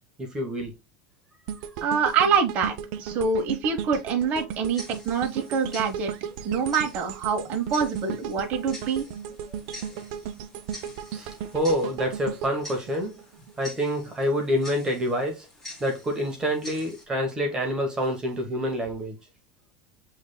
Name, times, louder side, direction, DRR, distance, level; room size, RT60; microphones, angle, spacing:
voice 1, 0.2-0.7 9.5-9.6 11.1-13.2 13.6-15.5 15.8-19.2, equal, 15° right, 1.1 m, -27 dB
sound 1, 1.5-13.6 14.1-14.2, right 8 dB, 60° right, 0.6 m, -36 dB
voice 2, 1.8-2.7 3.0-6.1 6.4-9.1, right 6 dB, 40° right, 1.0 m, -25 dB
Tick-tock, 4.7-17.0, left 1 dB, 10° left, 2.3 m, -46 dB
7.1 x 3.3 x 2.2 m
supercardioid pair, 140°, 4 cm